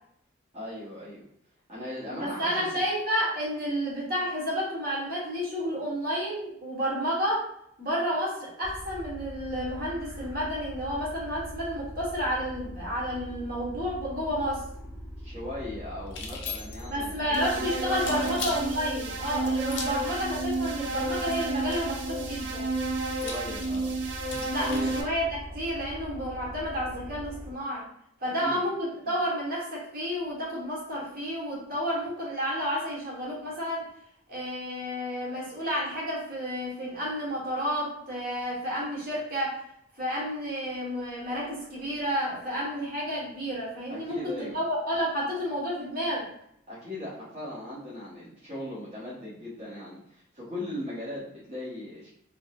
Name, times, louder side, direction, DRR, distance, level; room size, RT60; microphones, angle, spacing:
voice 1, 0.5-1.2 1.7-2.8 15.2-18.5 23.1-23.9 24.6-24.9 28.4-28.6 29.0-29.1 43.9-44.6 46.7-52.1, left 1 dB, 35° right, -11 dB, 1.1 m, -38 dB
voice 2, 2.2-7.5 7.8-14.6 16.9-22.7 24.5-27.8 28.2-33.9 34.3-39.6 40.0-46.3, equal, 50° right, -5 dB, 1.4 m, -31 dB
sound 1, 8.6-27.5, equal, 5° right, 0.7 m, -42 dB
sound 2, 16.1-17.0 18.0-18.6 19.6-20.1 21.2-21.9 23.1-24.9, left 5 dB, 65° left, 0.6 m, -39 dB
sound 3, 17.3-25.0, right 2 dB, 65° right, 0.5 m, -31 dB
3.8 x 2.8 x 2.5 m, 0.72 s
head